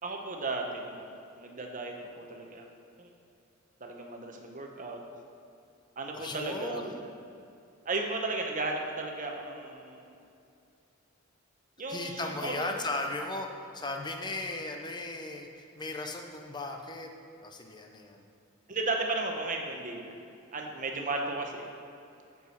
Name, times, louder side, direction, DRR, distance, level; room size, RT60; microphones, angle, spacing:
voice 1, 0.0-2.7 3.0-3.1 3.8-5.0 6.0-6.9 7.8-10.1 11.8-12.7 18.7-20.1 20.5-21.7, right 2 dB, 40° right, 2 dB, 0.9 m, -35 dB
voice 2, 6.1-7.0 11.9-17.1 17.4-18.2, left 2 dB, 20° left, 3 dB, 0.7 m, -37 dB
8.4 x 4.7 x 6.4 m, 2.6 s
head